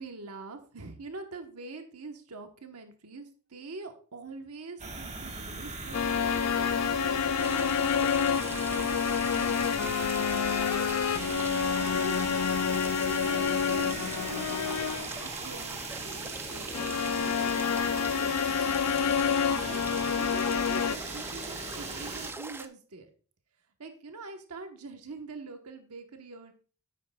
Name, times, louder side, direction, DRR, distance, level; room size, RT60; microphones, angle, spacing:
voice 1, 0.0-6.5 7.0-10.2 11.1-12.4 13.0-14.8 15.2-18.5 19.0-23.1 23.8-26.5, right 3 dB, 80° right, 5 dB, 1.1 m, -45 dB
sound 1, 4.8-22.3, right 3 dB, 30° right, 1.3 m, -39 dB
sound 2, 5.9-15.2 16.7-21.0, left 7 dB, 80° left, 0.4 m, -28 dB
sound 3, 7.4-22.7, right 3 dB, 10° right, 0.4 m, -43 dB
9.8 x 8.4 x 2.3 m, 0.39 s
head